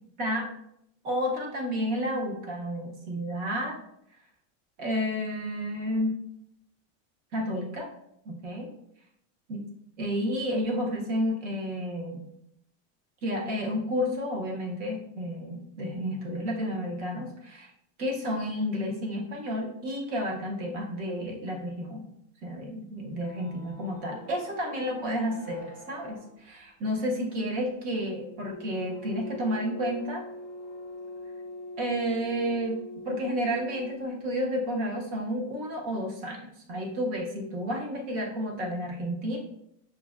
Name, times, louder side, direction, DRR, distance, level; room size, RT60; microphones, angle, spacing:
voice 1, 1.0-3.8 4.8-6.2 7.3-7.9 8.2-8.7 9.5-9.6 10.0-12.2 13.2-17.7 18.0-22.1 22.4-30.2 31.8-39.4, equal, 25° right, 0 dB, 0.5 m, -31 dB
sound 1, 23.0-34.2, left 1 dB, 20° left, 0.5 m, -44 dB
6.0 x 2.1 x 2.3 m, 0.74 s
supercardioid pair, 175°, 38 cm